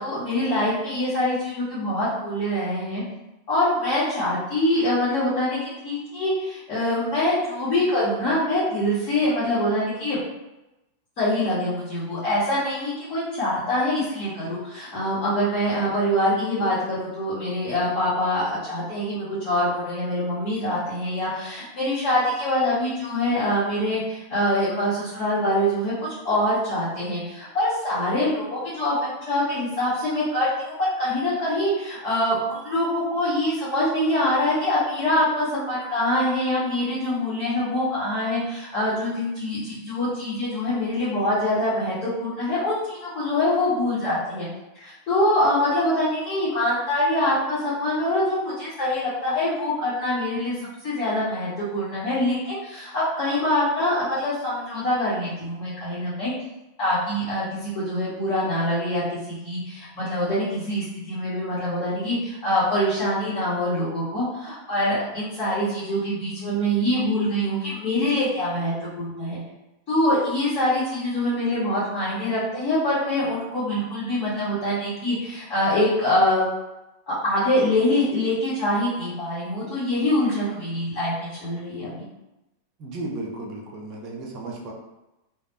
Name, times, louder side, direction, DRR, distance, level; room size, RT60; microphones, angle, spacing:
voice 1, 0.0-3.0 3.5-10.2 11.2-44.5 44.7-50.5 50.8-56.3 56.8-59.0 59.4-69.4 69.9-76.5 77.1-81.9, left 1 dB, 40° left, -11 dB, 1.3 m, -24 dB
voice 2, 82.8-84.7, right 2 dB, 40° right, -1 dB, 0.8 m, -34 dB
3.4 x 2.4 x 2.5 m, 0.96 s
figure-of-eight pair, 90°, 0 cm